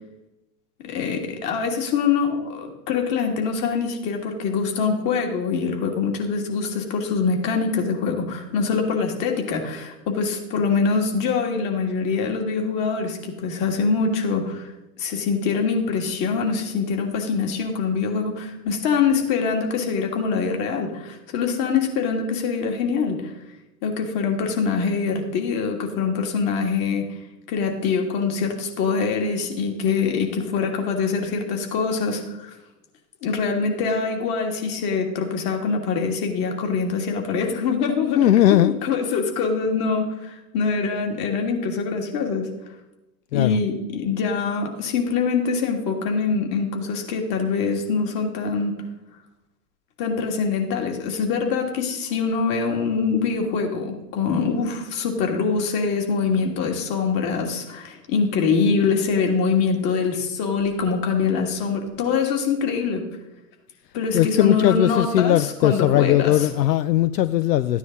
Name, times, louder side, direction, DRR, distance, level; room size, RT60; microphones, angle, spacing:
voice 1, 0.8-14.7 15.0-23.3 23.8-27.2 27.5-32.5 33.2-42.5 43.3-48.7 50.0-63.1 63.9-66.3, left 5 dB, 45° left, 2 dB, 2.8 m, -24 dB
voice 2, 38.1-38.8 43.3-43.6 64.1-67.8, left 12 dB, 80° left, 14 dB, 0.6 m, -19 dB
14.0 x 9.6 x 4.1 m, 0.98 s
hypercardioid pair, 110°, 48 cm